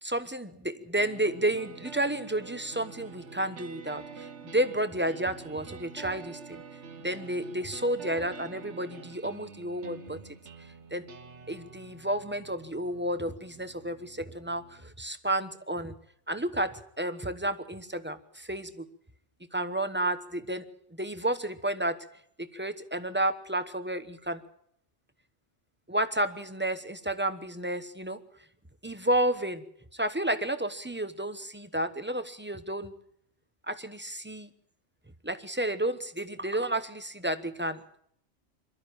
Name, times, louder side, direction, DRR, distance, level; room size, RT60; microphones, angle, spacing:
voice 1, 0.0-6.6 7.0-10.2 10.9-11.0 11.5-15.9 16.3-18.9 19.5-20.6 21.0-22.1 22.4-24.4 25.9-28.2 28.8-29.6 29.9-32.9 33.7-34.5 35.2-37.8, right 1 dB, 10° right, 10 dB, 1.0 m, -31 dB
sound 1, 1.0-15.0, right 5 dB, 70° right, 1.5 m, -47 dB
22.5 x 13.0 x 8.9 m, 0.68 s
omnidirectional pair, 1.2 m